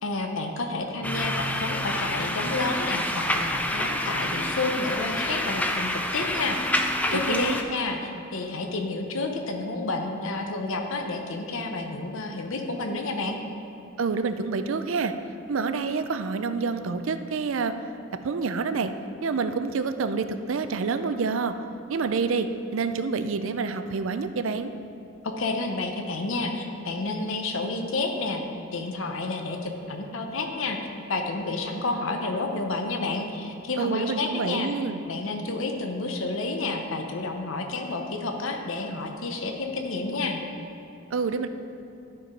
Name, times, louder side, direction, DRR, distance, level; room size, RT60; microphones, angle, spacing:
voice 1, 0.0-6.6 7.1-13.4 25.2-28.4 28.7-30.8 31.1-34.7 35.1-40.4, left 3 dB, 65° left, 4 dB, 0.8 m, -30 dB
sound 1, 1.0-7.6, left 1 dB, 5° left, 0.4 m, -28 dB
voice 2, 7.1-7.5 14.0-15.1 15.5-17.7 18.2-18.9 19.2-21.5 21.9-24.7 33.8-35.0 41.1-41.5, right 4 dB, 65° right, 10 dB, 0.5 m, -27 dB
12.0 x 4.6 x 5.2 m, 2.8 s
head